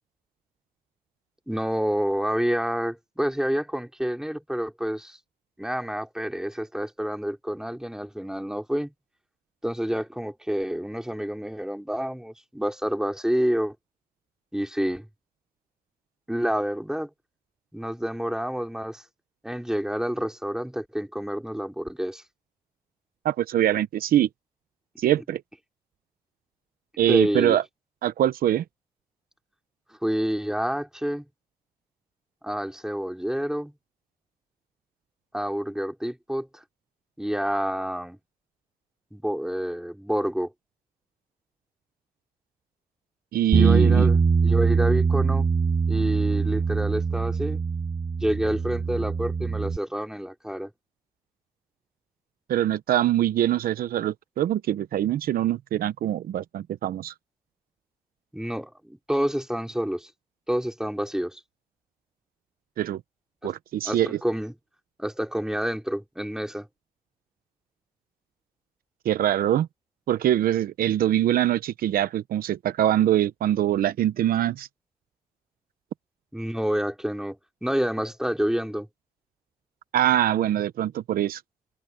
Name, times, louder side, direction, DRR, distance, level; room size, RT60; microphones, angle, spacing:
voice 1, 1.5-5.2 5.6-8.9 9.6-13.7 14.5-15.1 16.3-17.1 17.7-19.0 19.4-22.2 27.1-27.6 29.9-31.2 32.4-33.7 35.3-36.6 37.2-38.2 39.1-40.5 43.5-45.5 45.9-47.6 48.2-50.7 58.3-60.1 60.5-61.4 63.4-63.5 63.8-64.5 65.0-66.7 76.3-78.9, equal, 5° right, 5.0 m, -28 dB
voice 2, 23.2-24.3 25.0-25.4 27.0-27.6 28.0-28.6 43.3-44.1 52.5-57.1 62.8-63.0 63.4-64.2 69.0-69.7 70.1-74.7 79.9-81.4, right 12 dB, 80° right, 0.8 m, -23 dB
Bass guitar, 43.5-49.8, right 5 dB, 45° right, 1.9 m, -23 dB
open air
cardioid pair, 60°, 15 cm